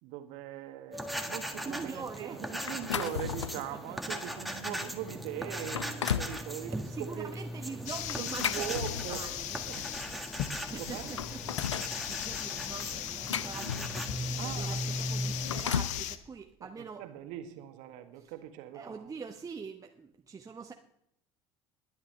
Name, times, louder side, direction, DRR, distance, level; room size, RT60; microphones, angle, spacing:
voice 1, 0.0-7.3 8.2-9.2 9.7-9.9 10.8-11.1 14.4-14.9 16.6-19.0, right 12 dB, 60° right, 7 dB, 1.6 m, -41 dB
sound 1, 0.9-15.6, equal, ahead, 1.6 m, -39 dB
voice 2, 1.6-2.8 3.5-4.0 6.6-10.0 10.7-11.4 12.1-17.0 18.1-18.3 18.7-20.7, right 5 dB, 25° right, 3 dB, 1.0 m, -44 dB
sound 2, 2.7-3.7 4.3-4.5 5.1-5.2 5.6-6.4 8.1-9.4 10.5-10.6 10.9-12.0 12.8-14.2 15.2-16.0, left 8 dB, 85° left, 0.4 m, -35 dB
sound 3, 7.9-16.2, left 12 dB, 55° left, 1.0 m, -38 dB
21.0 x 10.5 x 3.3 m, 0.75 s
figure-of-eight pair, 65°, 15 cm